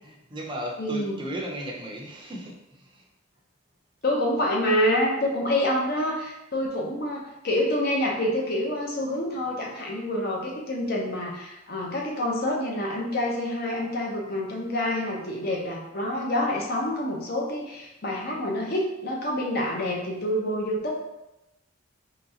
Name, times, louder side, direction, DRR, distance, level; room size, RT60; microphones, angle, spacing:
voice 1, 0.0-3.0, right 1 dB, 25° right, -1 dB, 0.6 m, -36 dB
voice 2, 0.8-1.2 4.0-21.0, left 1 dB, 50° left, -2 dB, 0.8 m, -27 dB
4.1 x 3.2 x 2.8 m, 0.92 s
head